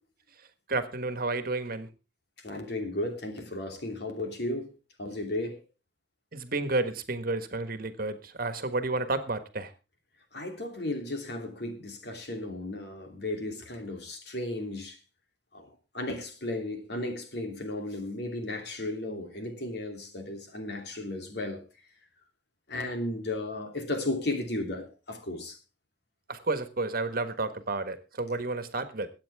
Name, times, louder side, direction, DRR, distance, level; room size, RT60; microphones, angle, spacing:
voice 1, 0.7-1.9 6.3-9.7 26.3-29.1, right 3 dB, 55° right, 1.5 m, -31 dB
voice 2, 2.4-4.7 5.0-5.6 10.3-15.0 15.5-15.7 15.9-21.6 22.7-25.6, left 2 dB, 65° left, 3.0 m, -34 dB
22.5 x 8.7 x 3.5 m
head